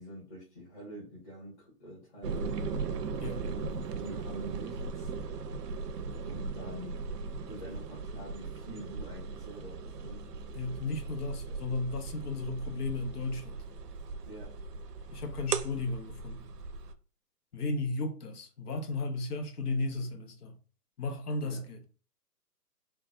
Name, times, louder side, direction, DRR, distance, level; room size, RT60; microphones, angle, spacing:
voice 1, 0.0-2.7 4.0-5.1 6.2-7.0 7.4-10.2 14.2-14.5 21.4-21.6, equal, 30° left, 1.4 m, -46 dB
sound 1, 2.2-16.9, right 4 dB, 75° right, 0.6 m, -38 dB
voice 2, 3.2-3.5 10.5-13.6 15.1-16.5 17.5-20.5 21.0-21.8, left 2 dB, 70° left, 0.8 m, -35 dB
3.5 x 2.2 x 2.3 m
hypercardioid pair, 150°, 49 cm